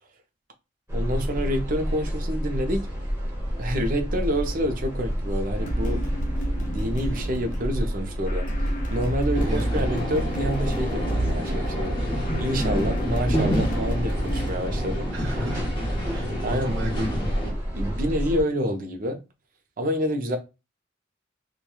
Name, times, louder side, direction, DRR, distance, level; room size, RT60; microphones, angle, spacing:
sound 1, 0.9-18.4, equal, 15° right, 0.9 m, -30 dB
voice 1, 0.9-2.9 3.6-6.0 6.6-15.1 16.4-16.8 17.8-19.2 19.8-20.4, equal, 45° right, 0.5 m, -28 dB
sound 2, 5.6-14.5, right 1 dB, 45° left, 0.5 m, -31 dB
sound 3, 9.3-17.5, equal, 25° left, 0.9 m, -29 dB
voice 2, 9.5-9.8 15.1-15.7 16.1-17.5, equal, 80° right, 1.1 m, -33 dB
2.8 x 2.2 x 2.3 m
head